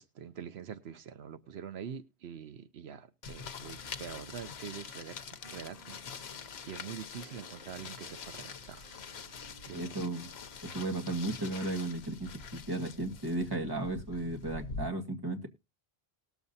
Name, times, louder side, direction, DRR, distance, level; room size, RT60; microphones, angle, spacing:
voice 1, 0.0-5.2 5.5-6.4 6.6-8.9 9.3-9.8, right 8 dB, 80° right, 1.0 m, -45 dB
sound 1, 3.2-14.9, left 6 dB, 80° left, 1.0 m, -45 dB
Piano, 3.7-10.6, right 3 dB, 55° right, 6.2 m, -58 dB
voice 2, 9.7-10.3 10.6-15.5, right 2 dB, 20° right, 1.7 m, -35 dB
19.5 x 7.2 x 2.7 m
omnidirectional pair, 1.1 m